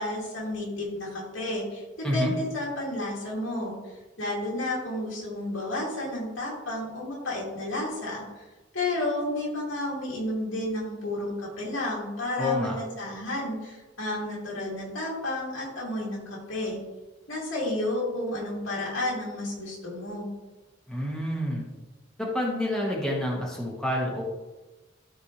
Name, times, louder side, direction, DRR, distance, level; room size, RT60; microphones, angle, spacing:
voice 1, 0.0-3.7 4.2-8.2 8.7-16.8 17.3-20.3, left 1 dB, 85° left, -4 dB, 2.8 m, -31 dB
voice 2, 12.4-12.7 20.9-21.6 22.2-24.2, left 1 dB, 5° left, -3 dB, 1.5 m, -28 dB
13.0 x 4.6 x 3.3 m, 1.1 s
head